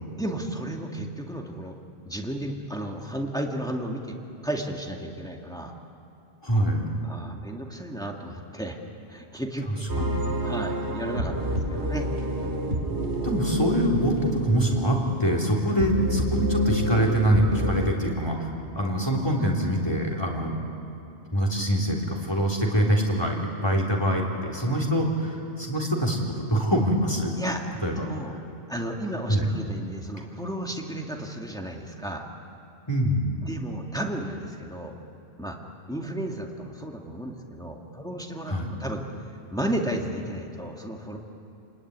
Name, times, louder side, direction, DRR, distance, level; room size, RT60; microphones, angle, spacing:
voice 1, 0.1-1.8 2.0-4.2 4.4-5.7 7.0-8.8 9.1-9.9 10.4-12.1 12.4-12.6 19.4-19.5 27.4-27.6 27.9-28.3 28.7-32.3 33.4-35.0 35.4-35.6 35.9-39.0 39.5-41.2, right 1 dB, 5° left, 0 dB, 2.2 m, -33 dB
voice 2, 6.4-6.9 10.0-10.2 13.2-18.4 18.7-20.6 21.3-22.0 22.2-27.3 27.8-28.0 29.3-29.5 32.9-33.5 38.5-38.7, equal, 20° left, 0 dB, 3.8 m, -24 dB
sound 1, 9.9-17.9, right 1 dB, 80° right, 3.6 m, -29 dB
29.5 x 21.0 x 9.7 m, 2.7 s
omnidirectional pair, 1.1 m